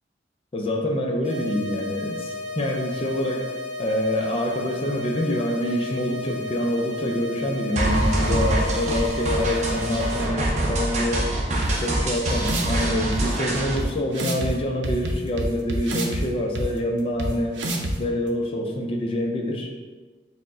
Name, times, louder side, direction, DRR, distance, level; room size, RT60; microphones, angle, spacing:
voice 1, 0.5-3.5 3.8-11.3 11.8-17.6 18.0-19.7, left 1 dB, 30° left, 1 dB, 0.4 m, -26 dB
sound 1, 1.2-10.2, left 2 dB, 5° right, 1.0 m, -34 dB
sound 2, 7.8-13.8, right 1 dB, 40° right, 0.6 m, -25 dB
sound 3, 11.6-11.7 12.3-12.8 13.1-13.2 13.8-13.9 14.1-14.5 14.8-16.2 16.6-16.7 17.2-17.3 17.6-17.9, right 1 dB, 85° right, 0.5 m, -27 dB
4.5 x 2.1 x 3.6 m, 1.4 s
head